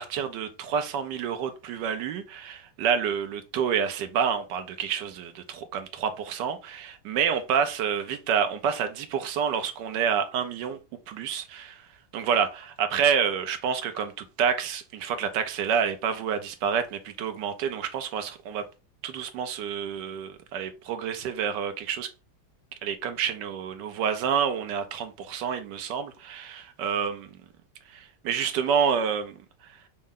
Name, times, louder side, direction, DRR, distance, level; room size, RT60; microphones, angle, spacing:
voice 1, 0.0-10.8 11.1-11.8 12.1-18.6 19.0-22.1 22.8-27.3 27.9-29.3 29.6-29.7, right 7 dB, 80° right, 1.3 m, -28 dB
5.5 x 2.1 x 3.6 m
omnidirectional pair, 1.9 m